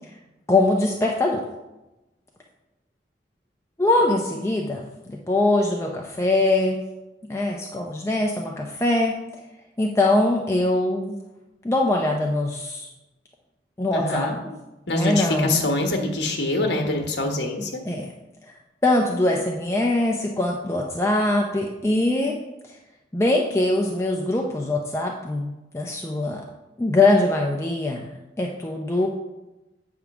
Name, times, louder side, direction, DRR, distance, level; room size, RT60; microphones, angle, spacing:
voice 1, 0.5-1.4 3.8-4.8 5.1-6.8 7.3-9.2 9.8-11.2 11.6-12.9 13.8-14.5 14.9-15.7 17.9-18.1 18.8-22.4 23.1-26.4 26.8-28.1 28.4-29.1, left 2 dB, 15° left, 0 dB, 0.5 m, -22 dB
voice 2, 13.9-14.4 14.9-17.8, left 1 dB, 70° left, 3 dB, 1.2 m, -24 dB
8.4 x 3.6 x 5.9 m, 0.99 s
head